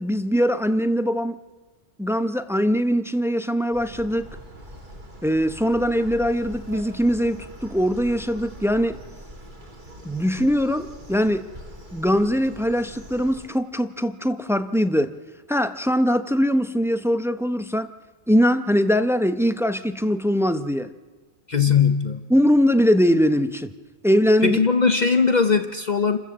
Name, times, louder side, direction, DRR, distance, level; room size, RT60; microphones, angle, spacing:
voice 1, 0.0-1.4 2.0-4.3 5.2-9.0 10.0-11.5 11.9-15.1 15.5-17.9 18.3-20.9 22.3-23.7 24.0-24.6, equal, 5° right, 10 dB, 0.4 m, -21 dB
sound 1, 3.7-13.5, equal, 40° right, 2.2 m, -42 dB
voice 2, 21.5-22.2 24.4-26.2, left 5 dB, 40° left, 8 dB, 0.8 m, -20 dB
28.0 x 14.5 x 7.5 m, 1.4 s
omnidirectional pair, 1.3 m